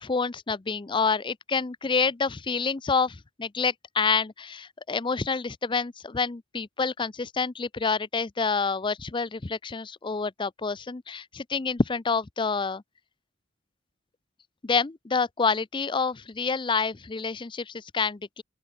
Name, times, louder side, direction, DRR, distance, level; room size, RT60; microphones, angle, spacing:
voice 1, 0.0-12.8 14.6-18.4, left 4 dB, 25° left, 0.5 m, -28 dB
open air
head